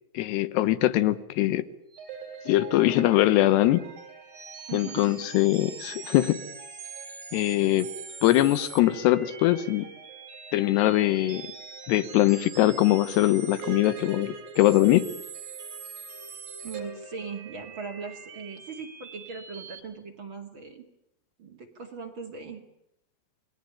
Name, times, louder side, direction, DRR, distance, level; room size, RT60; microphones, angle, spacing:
voice 1, 0.1-1.7 2.5-3.8 4.7-6.4 7.3-7.9 8.2-9.9 10.5-11.5 11.9-15.1, left 15 dB, 85° left, 15 dB, 3.2 m, -22 dB
sound 1, 1.9-19.8, right 6 dB, 55° right, 5.4 m, -42 dB
voice 2, 4.7-5.2 16.6-20.9 21.4-22.6, right 5 dB, 40° right, 3 dB, 2.3 m, -39 dB
27.5 x 20.0 x 8.8 m, 0.80 s
omnidirectional pair, 4.8 m